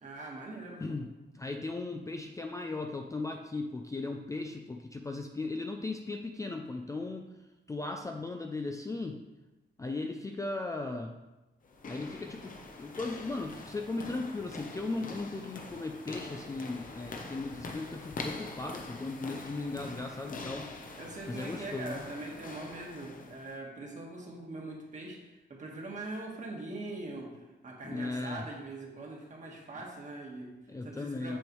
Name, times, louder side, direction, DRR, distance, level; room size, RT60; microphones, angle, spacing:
voice 1, 0.0-1.0 21.0-25.2 25.5-30.5 30.8-31.4, right 2 dB, 40° right, -1 dB, 1.5 m, -42 dB
voice 2, 0.8-7.3 7.7-9.2 9.8-11.2 11.9-20.7 21.3-22.0 27.8-28.4 29.8-29.9 30.7-31.4, left 3 dB, 15° left, 3 dB, 0.4 m, -37 dB
sound 1, 11.6-23.6, left 3 dB, 45° left, 0.8 m, -44 dB
7.7 x 7.1 x 3.1 m, 1.1 s
wide cardioid pair, 165°, 19 cm